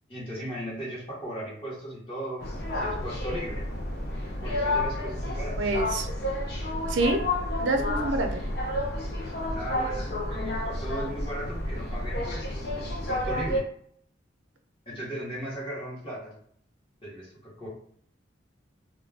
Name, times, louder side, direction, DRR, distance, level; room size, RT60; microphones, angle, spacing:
voice 1, 0.1-2.4 2.7-3.6 4.4-5.7 9.2-13.6 14.9-16.3 17.0-17.7, equal, 30° left, -7 dB, 0.8 m, -37 dB
sound 1, 2.4-13.6, left 1 dB, 55° left, 0.5 m, -30 dB
voice 2, 5.6-6.1 6.9-7.2 7.6-8.4, right 2 dB, 75° right, 5 dB, 0.5 m, -26 dB
2.2 x 2.2 x 3.2 m, 0.62 s
head